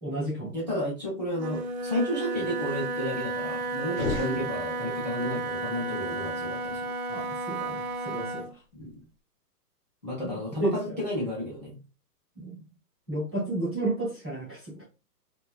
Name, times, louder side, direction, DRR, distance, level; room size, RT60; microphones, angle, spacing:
voice 1, 0.0-0.6 7.1-8.5 10.6-11.0 12.4-12.6 13.1-14.8, right 2 dB, 15° right, -10 dB, 0.6 m, -32 dB
voice 2, 0.5-6.9 8.7-9.0 10.0-11.8, equal, 30° left, -6 dB, 0.4 m, -32 dB
Wind instrument woodwind instrument, 1.3-8.5, right 2 dB, 65° right, 0.5 m, -33 dB
sound 1, 3.9-5.2, left 4 dB, 55° left, 0.7 m, -34 dB
2.5 x 2.2 x 2.3 m, 0.30 s
hypercardioid pair, 170°, 47 cm